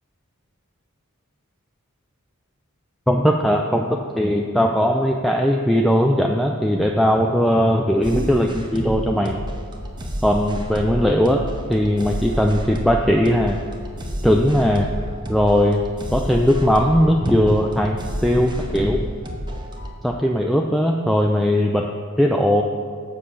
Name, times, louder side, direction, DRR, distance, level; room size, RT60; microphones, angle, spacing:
voice 1, 3.1-9.4 10.2-13.6 14.2-14.9 15.3-15.8 16.1-19.1 20.0-21.9 22.2-22.6, equal, ahead, 1 dB, 0.3 m, -19 dB
sound 1, 8.0-19.9, equal, 20° right, 0.8 m, -30 dB
7.4 x 5.8 x 6.5 m, 2.1 s
head